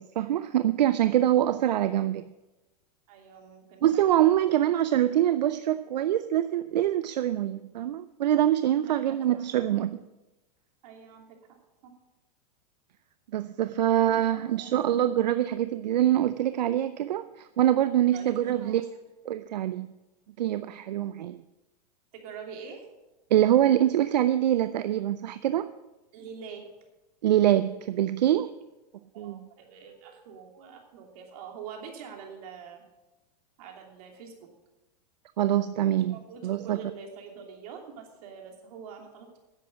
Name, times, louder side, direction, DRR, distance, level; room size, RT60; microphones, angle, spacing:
voice 1, 0.0-2.2 3.8-10.0 13.3-18.8 19.3-19.9 20.4-21.4 23.3-25.7 27.2-28.5 29.2-29.4 35.4-36.2 36.4-36.8, right 12 dB, 85° right, 13 dB, 0.5 m, -24 dB
voice 2, 3.1-4.3 4.6-4.8 8.8-9.6 10.8-11.6 14.3-14.8 18.1-18.9 22.1-22.9 26.1-26.6 28.9-32.8 33.6-34.5 35.8-39.4, right 6 dB, 65° right, 2 dB, 3.0 m, -45 dB
10.5 x 7.8 x 7.4 m, 1.0 s
hypercardioid pair, 120°, 21 cm